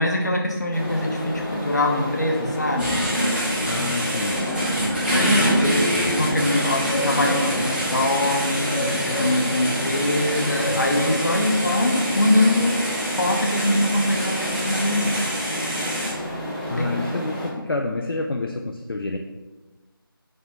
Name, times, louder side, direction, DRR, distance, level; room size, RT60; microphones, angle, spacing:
voice 1, 0.0-3.0 5.1-12.8 13.1-15.2 16.8-16.9, left 1 dB, 50° left, 1 dB, 0.8 m, -23 dB
sound 1, 0.7-17.5, left 1 dB, 5° left, 0.9 m, -30 dB
sound 2, 2.8-16.1, equal, 25° right, 1.2 m, -26 dB
voice 2, 3.7-4.4 16.7-19.2, left 2 dB, 70° left, 2 dB, 0.4 m, -28 dB
4.3 x 2.8 x 4.4 m, 1.2 s
figure-of-eight pair, 165°, 12 cm